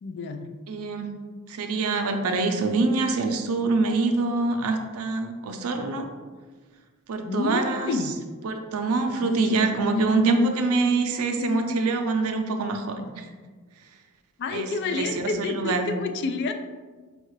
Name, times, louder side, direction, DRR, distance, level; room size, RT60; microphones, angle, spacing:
voice 1, 0.0-0.5 7.2-8.1 9.2-10.6 11.4-11.6 14.4-16.5, left 2 dB, 50° left, 8 dB, 0.3 m, -29 dB
voice 2, 0.7-1.2 1.5-6.1 7.1-8.0 8.4-13.3 14.5-15.9, right 3 dB, 75° right, 5 dB, 0.5 m, -25 dB
5.4 x 2.4 x 3.1 m, 1.4 s
head